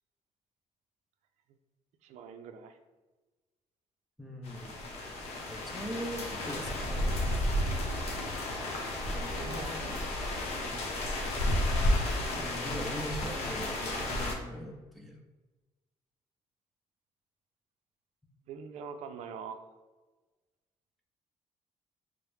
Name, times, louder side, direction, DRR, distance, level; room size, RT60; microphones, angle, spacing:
voice 1, 2.0-2.8 9.3-10.0 18.5-19.6, right 6 dB, 85° right, 7 dB, 0.4 m, -43 dB
voice 2, 4.2-4.8 5.5-7.4 9.1-9.9 12.4-15.2, equal, ahead, 1 dB, 0.4 m, -41 dB
sound 1, 4.4-14.4, left 1 dB, 70° left, 0.7 m, -32 dB
4.8 x 2.0 x 3.1 m, 1.2 s
cardioid pair, 175°, 11 cm